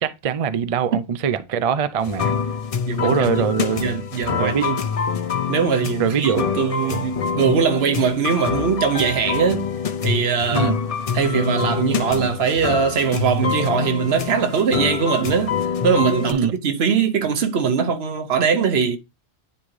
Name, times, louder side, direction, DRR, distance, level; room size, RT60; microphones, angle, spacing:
voice 1, 0.0-2.4 3.0-3.9 4.4-4.7 6.0-7.0 10.5-10.8 16.3-16.5, right 7 dB, 50° right, 0.4 m, -23 dB
sound 1, 2.0-16.3, left 6 dB, 45° left, 0.6 m, -25 dB
voice 2, 2.9-3.3 3.8-4.8 5.5-9.7 10.0-10.7 11.1-19.0, right 6 dB, 75° right, 1.1 m, -21 dB
9.6 x 3.6 x 3.2 m
omnidirectional pair, 1.1 m